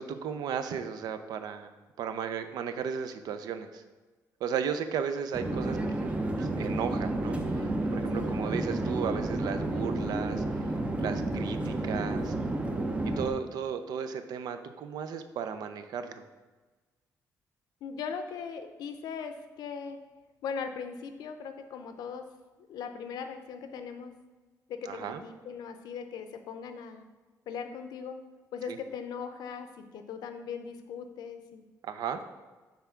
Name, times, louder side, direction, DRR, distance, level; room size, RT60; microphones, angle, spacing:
voice 1, 0.0-3.8 4.4-6.1 6.4-10.7 11.0-12.3 13.0-16.3 24.9-25.2 28.7-28.8 31.8-32.2, right 7 dB, 80° right, 9 dB, 0.5 m, -35 dB
Conversation / Chatter / Fixed-wing aircraft airplane, 5.3-13.3, right 2 dB, 20° right, 0.5 m, -31 dB
voice 2, 8.1-8.4 17.8-20.0 20.4-22.3 22.7-24.1 24.7-27.0 27.5-28.2 28.5-31.6, left 6 dB, 90° left, 7 dB, 0.6 m, -39 dB
5.7 x 3.6 x 5.7 m, 1.3 s
cardioid pair, 150°, 7 cm